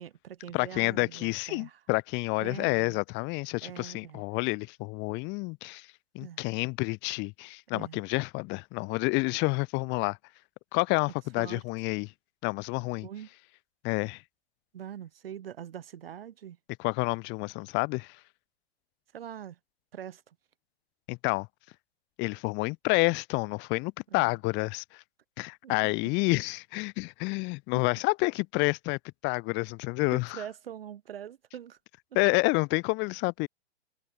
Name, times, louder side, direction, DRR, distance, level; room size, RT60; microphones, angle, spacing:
voice 1, 0.0-1.8 2.4-3.0 3.6-4.2 6.2-6.4 7.7-8.0 11.4-11.6 13.0-13.3 14.7-16.6 19.1-19.6 19.9-20.4 24.1-24.4 25.6-25.9 30.1-31.8, right 9 dB, 60° right, 5.4 m, -43 dB
voice 2, 0.5-5.9 6.1-10.2 10.7-12.1 12.4-13.1 13.8-14.2 16.8-18.2 21.1-21.5 22.2-25.0 25.4-30.4 32.1-33.5, left 27 dB, 35° left, 4.3 m, -29 dB
figure-of-eight pair, 115°, 32 cm